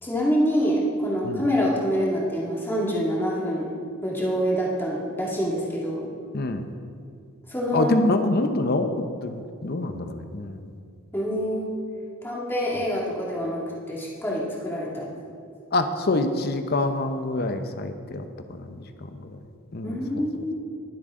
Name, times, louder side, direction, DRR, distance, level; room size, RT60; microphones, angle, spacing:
voice 1, 0.0-3.7 4.0-6.1 7.5-7.9 11.1-11.8 12.2-15.1 19.8-20.5, equal, 10° left, -5 dB, 2.2 m, -26 dB
voice 2, 7.7-8.9 9.2-10.7 15.7-18.3 18.5-18.9 19.1-19.3 19.7-20.2, left 2 dB, 45° left, 8 dB, 0.8 m, -26 dB
19.5 x 8.0 x 3.7 m, 2.3 s
head